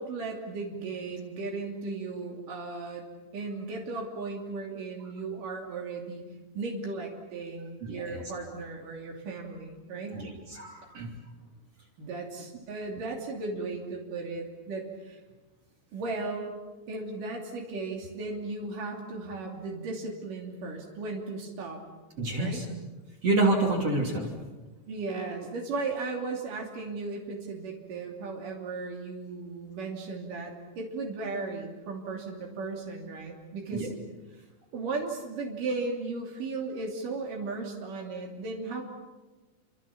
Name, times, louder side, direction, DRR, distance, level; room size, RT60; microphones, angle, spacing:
voice 1, 0.0-3.0 3.3-6.2 6.5-10.2 12.0-15.2 15.9-16.6 16.9-21.8 22.4-22.6 24.9-33.9 34.7-38.8, right 3 dB, 90° right, 0 dB, 4.6 m, -36 dB
voice 2, 7.8-8.3 10.1-11.1 22.2-22.7 23.2-24.3 33.7-33.9, right 2 dB, 50° right, 1 dB, 4.1 m, -28 dB
30.0 x 26.0 x 7.2 m, 1.2 s
omnidirectional pair, 3.6 m